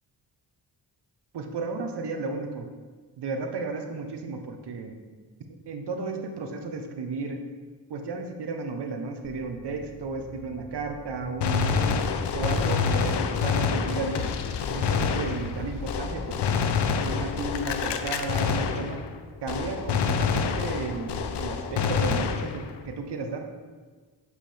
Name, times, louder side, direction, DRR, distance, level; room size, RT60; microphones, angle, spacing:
voice 1, 1.3-2.7 3.2-5.0 5.7-7.4 7.9-12.0 12.3-14.3 14.7-16.8 17.0-19.0 19.4-23.5, right 3 dB, 60° right, 5 dB, 1.0 m, -33 dB
sound 1, 9.2-18.3, left 2 dB, 45° left, 1.0 m, -41 dB
Gunshot gunfire, 11.4-19.2 19.5-22.8, left 6 dB, 65° left, 0.7 m, -27 dB
7.6 x 4.8 x 3.4 m, 1.4 s
supercardioid pair, 40°, 45 cm